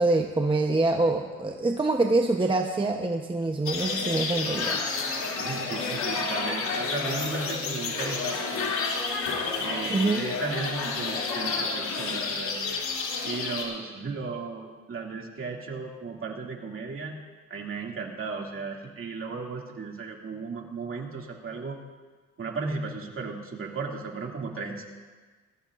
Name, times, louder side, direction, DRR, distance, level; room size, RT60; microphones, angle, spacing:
voice 1, 0.0-5.0 9.9-10.3, right 2 dB, 15° right, 3 dB, 0.9 m, -25 dB
sound 1, 3.7-13.6, left 4 dB, 75° left, 2.8 m, -30 dB
voice 2, 5.4-8.7 9.6-12.7 13.2-17.1 17.5-21.8 22.4-24.8, right 4 dB, 45° right, 0 dB, 2.4 m, -35 dB
20.5 x 15.0 x 2.5 m, 1.4 s
cardioid pair, 90°, 30 cm